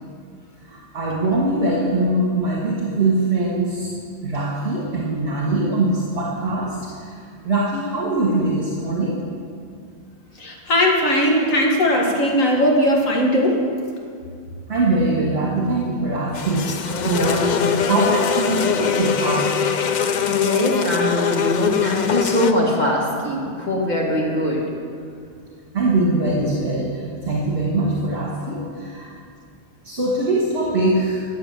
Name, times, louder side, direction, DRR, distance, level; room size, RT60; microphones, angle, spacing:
voice 1, 0.7-3.9 4.2-6.8 7.0-7.1 7.4-9.2 14.7-19.5 25.7-26.9 27.3-29.1 29.8-31.2, right 2 dB, 50° right, -4 dB, 1.9 m, -22 dB
voice 2, 10.4-13.6, equal, 85° left, 0 dB, 2.2 m, -18 dB
sound 1, 16.3-22.5, left 7 dB, 55° left, 0.5 m, -22 dB
voice 3, 20.3-24.6, left 1 dB, 35° left, -3 dB, 1.9 m, -22 dB
14.5 x 6.7 x 7.5 m, 2.3 s
omnidirectional pair, 1.3 m